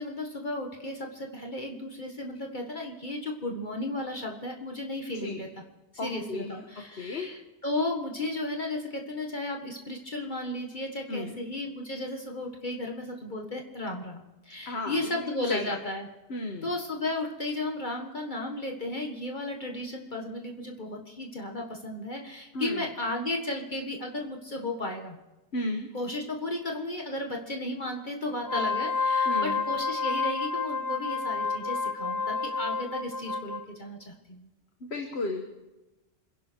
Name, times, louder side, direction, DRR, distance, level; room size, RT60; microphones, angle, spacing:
voice 1, 0.0-5.6 6.0-16.1 16.6-25.2 25.9-34.5, left 2 dB, 45° left, 1 dB, 1.9 m, -34 dB
voice 2, 6.0-6.5 6.9-7.3 11.1-11.3 14.7-15.8 16.3-16.7 22.5-22.9 25.5-25.9 29.3-29.6 34.8-35.4, left 2 dB, 65° left, 4 dB, 1.7 m, -34 dB
Wind instrument woodwind instrument, 28.4-33.6, left 4 dB, 15° left, 1.6 m, -29 dB
27.0 x 11.5 x 4.6 m, 1.0 s
omnidirectional pair, 1.2 m